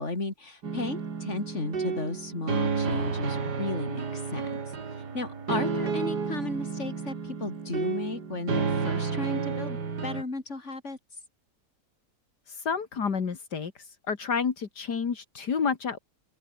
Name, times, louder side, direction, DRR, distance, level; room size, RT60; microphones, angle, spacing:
voice 1, 0.0-4.6 5.1-11.0, left 3 dB, 45° left, 4.4 m, -34 dB
sound 1, 0.6-10.2, right 5 dB, 75° right, 3.0 m, -31 dB
voice 2, 12.5-13.7 14.1-16.0, left 6 dB, 80° left, 2.6 m, -29 dB
open air
omnidirectional pair, 1.8 m